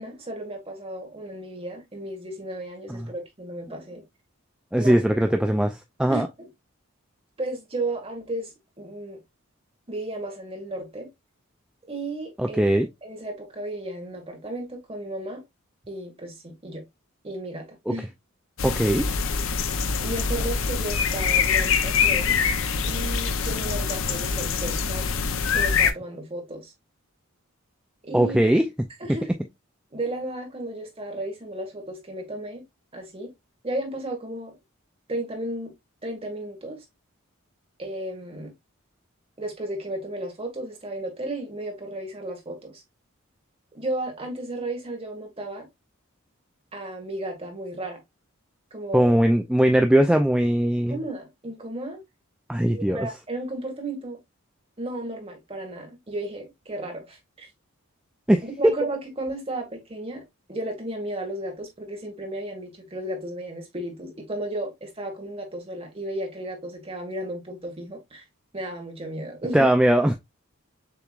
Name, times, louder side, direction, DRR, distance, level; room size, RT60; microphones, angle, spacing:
voice 1, 0.0-4.0 4.7-5.0 6.1-6.5 7.4-8.5 8.8-9.2 9.9-11.1 11.9-15.4 15.9-16.8 17.2-18.1 20.0-22.4 22.9-25.1 25.5-26.7 28.0-28.4 29.0-29.3 29.9-32.6 32.9-33.3 33.6-34.5 35.1-35.7 36.0-36.8 37.8-38.5 39.4-42.8 43.7-45.7 46.7-48.0 48.7-49.1 50.9-52.0 52.7-54.2 54.8-57.5 58.4-60.2 60.5-68.2 68.5-69.7, right 1 dB, 30° right, 1.6 m, -34 dB
voice 2, 4.7-6.3 12.4-12.9 17.9-18.0 18.6-19.1 28.1-28.6 48.9-51.0 52.5-53.0 58.3-58.7 69.5-70.1, right 1 dB, 5° right, 0.3 m, -20 dB
sound 1, 18.6-25.9, left 6 dB, 65° left, 0.6 m, -24 dB
6.7 x 3.0 x 2.4 m
head